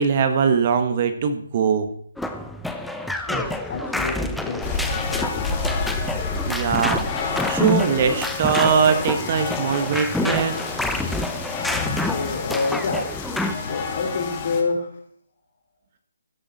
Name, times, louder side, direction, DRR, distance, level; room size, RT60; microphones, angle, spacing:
voice 1, 0.0-1.9 6.5-10.6, right 6 dB, 35° right, 8 dB, 1.4 m, -21 dB
sound 1, 2.2-13.5, left 2 dB, ahead, 0.7 m, -28 dB
voice 2, 3.3-5.5 12.0-13.1 13.6-15.0, left 4 dB, 45° left, 3 dB, 3.8 m, -28 dB
sound 2, 4.6-14.6, left 4 dB, 25° left, 2.6 m, -30 dB
16.0 x 10.0 x 4.2 m, 0.64 s
hypercardioid pair, 155°, 0 cm